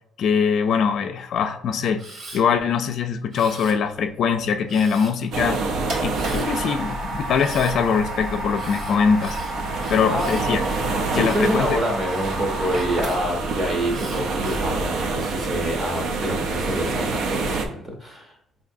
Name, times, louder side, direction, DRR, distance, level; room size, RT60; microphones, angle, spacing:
voice 1, 0.2-2.0 2.3-5.6 6.0-9.4 9.9-10.6 11.1-11.7, left 6 dB, 55° left, 8 dB, 0.3 m, -22 dB
Camera, 2.0-2.4 3.3-4.1 4.7-5.3 6.1-6.5 7.4-7.8 8.5-11.5 12.1-13.2 13.9-14.7 15.3-15.8, right 2 dB, 45° right, 1.0 m, -42 dB
sound 1, 5.3-17.7, right 3 dB, 60° right, 0.5 m, -28 dB
sound 2, 5.9-13.5, right 2 dB, 80° right, 1.3 m, -32 dB
voice 2, 9.8-10.3 11.1-18.3, equal, 20° right, 1 dB, 0.7 m, -27 dB
4.8 x 2.6 x 2.6 m, 0.75 s
cardioid pair, 150°, 0 cm